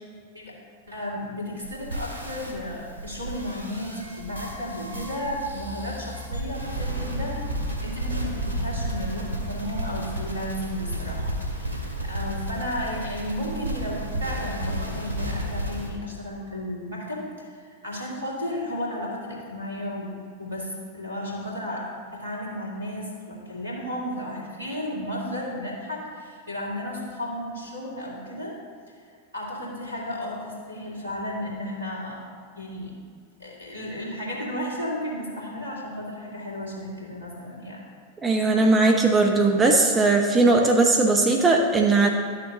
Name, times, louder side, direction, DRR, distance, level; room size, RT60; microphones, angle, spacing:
voice 1, 0.9-7.4 7.8-21.8 22.1-28.6 29.3-32.3 32.6-32.9 33.4-37.8, left 1 dB, 75° right, -4 dB, 2.3 m, -33 dB
sound 1, 1.6-15.9, right 1 dB, 85° left, 1.7 m, -32 dB
voice 2, 38.2-42.1, right 3 dB, 20° right, 2 dB, 0.7 m, -19 dB
11.5 x 6.6 x 3.1 m, 2.1 s
figure-of-eight pair, 90°, 0 cm